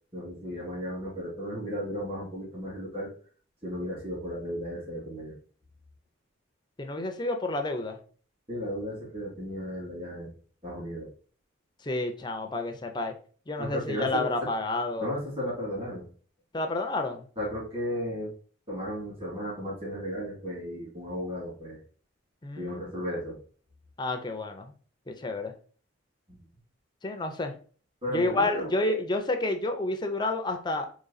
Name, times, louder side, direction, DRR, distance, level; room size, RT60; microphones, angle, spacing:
voice 1, 0.1-3.1 3.6-5.3 8.5-10.3 10.6-11.1 13.6-14.3 15.0-16.0 17.4-18.3 18.7-21.8 22.5-23.4 26.3-26.4 28.0-28.7, equal, 30° right, -5 dB, 2.2 m, -34 dB
voice 2, 6.8-8.0 11.8-13.2 13.5-15.1 16.5-17.3 22.4-22.9 24.0-24.7 25.1-25.5 27.0-27.6 28.1-30.9, left 2 dB, 20° left, 5 dB, 0.5 m, -30 dB
3.8 x 3.1 x 4.0 m, 0.42 s
head